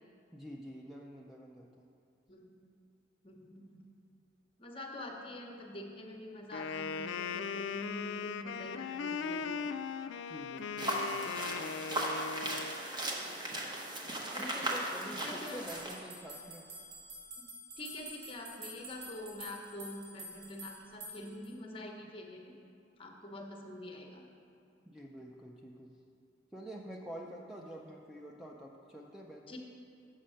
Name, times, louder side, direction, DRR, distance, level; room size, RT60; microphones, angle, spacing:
voice 1, 0.3-1.9 10.3-11.5 14.4-16.7 24.9-25.9 26.5-29.6, right 1 dB, ahead, -1 dB, 0.4 m, -47 dB
voice 2, 3.2-3.9 4.6-9.7 13.2-13.4 14.3-14.6 15.0-15.6 17.4-17.5 17.8-22.5 23.0-24.2 29.5-29.6, left 1 dB, 30° left, 1 dB, 0.9 m, -46 dB
Wind instrument woodwind instrument, 6.5-12.8, left 6 dB, 85° left, 0.3 m, -38 dB
sound 1, 10.8-15.9, right 1 dB, 25° right, 0.8 m, -37 dB
sound 2, 15.5-21.5, right 1 dB, 85° right, 1.5 m, -48 dB
7.7 x 6.2 x 5.5 m, 2.5 s
head